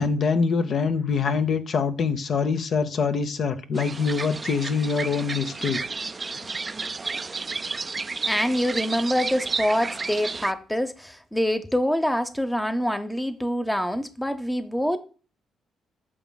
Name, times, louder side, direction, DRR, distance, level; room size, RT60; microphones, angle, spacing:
voice 1, 0.0-5.8, left 5 dB, 55° left, 0.7 m, -24 dB
sound 1, 3.7-10.5, right 4 dB, 30° right, 0.4 m, -32 dB
voice 2, 8.3-15.0, equal, 5° left, 0.7 m, -25 dB
8.7 x 6.1 x 2.3 m
cardioid pair, 90°, 0 cm